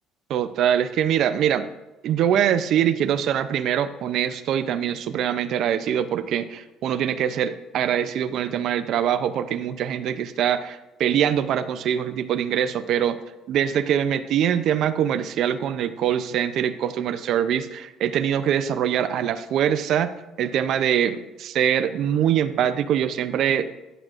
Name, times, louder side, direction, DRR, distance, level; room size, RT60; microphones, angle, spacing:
voice 1, 0.3-1.7 2.0-13.2 13.5-23.7, right 9 dB, 65° right, 12 dB, 0.5 m, -23 dB
11.0 x 7.7 x 2.5 m, 1.0 s
cardioid pair, 100°, 0 cm